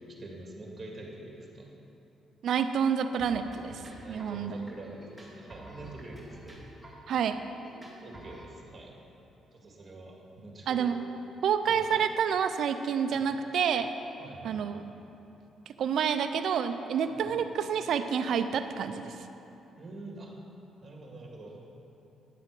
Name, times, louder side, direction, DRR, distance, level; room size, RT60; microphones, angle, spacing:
voice 1, 0.0-1.7 4.0-6.6 8.0-8.9 9.5-10.9 11.6-11.8 13.1-13.3 14.2-14.8 17.1-17.4 19.8-20.4 20.8-21.5, right 2 dB, 30° right, -1 dB, 2.0 m, -45 dB
voice 2, 2.4-3.8 4.1-4.6 7.1-7.4 10.7-11.0 11.4-13.9 14.4-14.8 15.8-19.1, right 7 dB, 70° right, 9 dB, 0.5 m, -28 dB
sound 1, 3.2-8.5, right 1 dB, ahead, 2.1 m, -49 dB
9.9 x 7.6 x 4.8 m, 2.9 s
cardioid pair, 90°, 0 cm